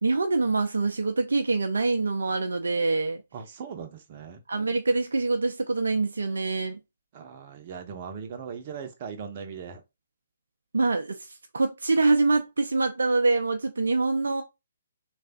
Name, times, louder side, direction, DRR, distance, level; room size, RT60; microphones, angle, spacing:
voice 1, 0.0-3.2 4.5-6.8 10.7-14.4, right 3 dB, 70° right, 0.5 m, -25 dB
voice 2, 3.3-4.4 7.1-9.8, right 6 dB, 40° right, 0.8 m, -39 dB
3.3 x 2.5 x 3.5 m
figure-of-eight pair, 130°, 0 cm